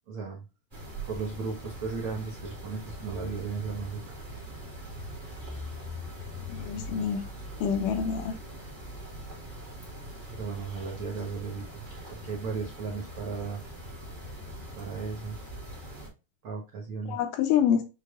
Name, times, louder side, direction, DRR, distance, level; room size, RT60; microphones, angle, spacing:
voice 1, 0.1-0.4 1.0-4.0 10.3-11.8 12.1-13.6 14.7-15.4 16.4-17.2, right 4 dB, 85° right, 1.1 m, -35 dB
sound 1, 0.7-16.1, equal, 25° right, 1.1 m, -41 dB
voice 2, 6.5-7.2 7.6-8.4 17.1-17.8, left 8 dB, 80° left, 2.1 m, -26 dB
6.5 x 3.4 x 2.4 m
omnidirectional pair, 4.1 m